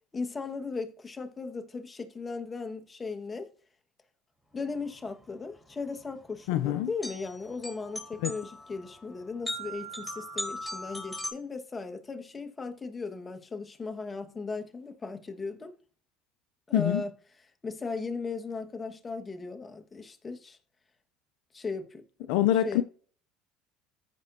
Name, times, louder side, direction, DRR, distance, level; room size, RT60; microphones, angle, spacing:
voice 1, 0.1-3.5 4.5-15.7 16.7-17.1 17.6-20.6 21.5-22.3 22.6-22.8, left 4 dB, 25° left, 1.5 m, -37 dB
sound 1, 4.9-11.3, left 1 dB, 5° left, 3.9 m, -39 dB
voice 2, 6.5-6.9 8.2-8.3 16.7-17.0 22.3-22.8, left 13 dB, 75° left, 0.5 m, -25 dB
14.5 x 6.0 x 2.7 m
hypercardioid pair, 75°, 0 cm